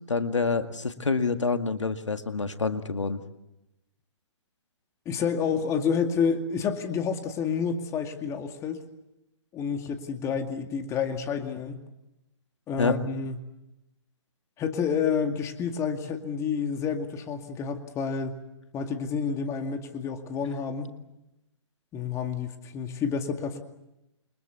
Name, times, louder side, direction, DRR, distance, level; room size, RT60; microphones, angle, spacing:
voice 1, 0.1-3.2 12.8-13.1, left 4 dB, 85° left, 8 dB, 2.0 m, -27 dB
voice 2, 5.1-8.8 9.5-11.8 12.7-13.4 14.6-18.4 18.7-20.9 21.9-23.6, left 6 dB, 20° left, 6 dB, 2.2 m, -29 dB
29.0 x 23.5 x 8.3 m, 0.93 s
figure-of-eight pair, 130°, 15 cm